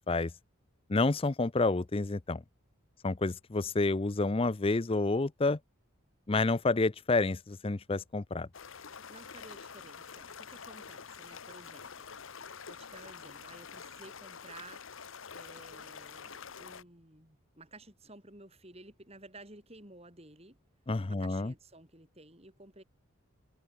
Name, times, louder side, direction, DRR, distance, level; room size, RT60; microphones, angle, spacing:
voice 1, 0.9-2.4 3.0-5.6 6.3-8.5 20.9-21.5, left 3 dB, 25° left, 0.5 m, -29 dB
sound 1, 8.5-16.8, left 6 dB, 65° left, 1.1 m, -47 dB
voice 2, 9.1-12.1 12.7-14.8 15.3-20.6 21.1-22.8, right 2 dB, 30° right, 6.6 m, -54 dB
head